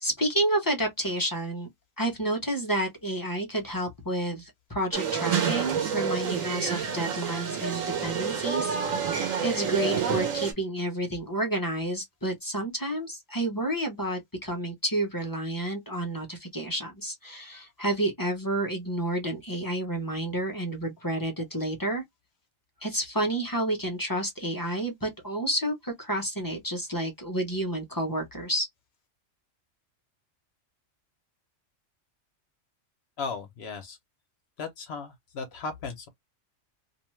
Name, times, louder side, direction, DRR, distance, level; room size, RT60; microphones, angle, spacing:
voice 1, 0.0-1.7 2.0-22.0 22.8-28.7, right 1 dB, 20° left, 0.6 m, -30 dB
sound 1, 4.9-10.5, right 6 dB, 90° right, 1.2 m, -28 dB
voice 2, 33.2-34.0 34.6-36.1, left 4 dB, 60° left, 0.9 m, -36 dB
2.7 x 2.2 x 3.0 m
omnidirectional pair, 1.3 m